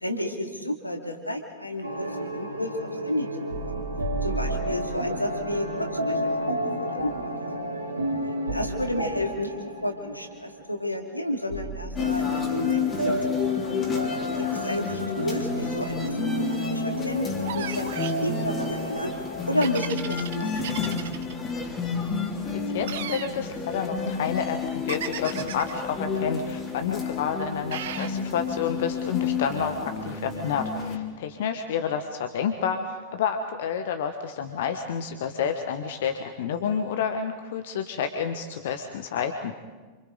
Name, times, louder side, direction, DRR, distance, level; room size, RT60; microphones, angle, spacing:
voice 1, 0.0-3.8 4.2-7.3 8.5-9.5 9.8-13.2 14.5-19.1 19.5-20.7 21.0-21.1, left 1 dB, 85° left, 3 dB, 2.3 m, -31 dB
sound 1, 1.8-11.2 11.5-19.6, right 1 dB, 80° right, 2.5 m, -32 dB
sound 2, 12.0-31.0, left 5 dB, 25° left, 3.0 m, -30 dB
sound 3, 17.4-18.2 19.6-21.3 22.8-23.3 24.9-25.7 27.7-28.1, right 10 dB, 60° right, 1.2 m, -35 dB
voice 2, 22.5-39.5, left 7 dB, 55° left, 7 dB, 1.2 m, -29 dB
28.0 x 26.5 x 3.9 m, 1.4 s
figure-of-eight pair, 90°, 0 cm